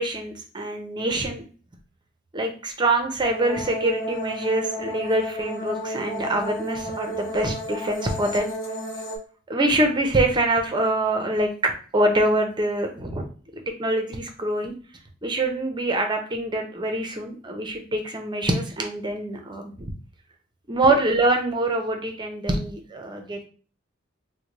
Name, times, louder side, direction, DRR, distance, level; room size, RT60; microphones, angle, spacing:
voice 1, 0.0-1.4 2.3-8.5 9.5-13.2 13.5-14.7 15.2-19.9 20.7-23.5, right 1 dB, 25° right, 4 dB, 0.6 m, -25 dB
sound 1, 3.2-9.2, equal, 80° left, 0.8 m, -32 dB
4.0 x 2.2 x 3.1 m, 0.40 s
head